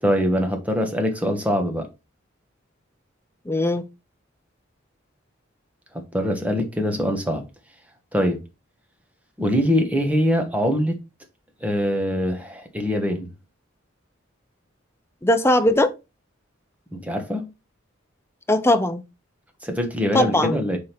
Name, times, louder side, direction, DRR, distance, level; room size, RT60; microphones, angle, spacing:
voice 1, 0.0-1.9 6.1-7.4 8.1-8.4 9.4-11.0 11.6-13.3 16.9-17.4 19.6-20.8, equal, 5° right, 1.2 m, -23 dB
voice 2, 3.5-3.8 15.2-15.9 18.5-19.0 20.1-20.6, left 1 dB, 15° left, 0.6 m, -19 dB
6.3 x 3.7 x 4.4 m
head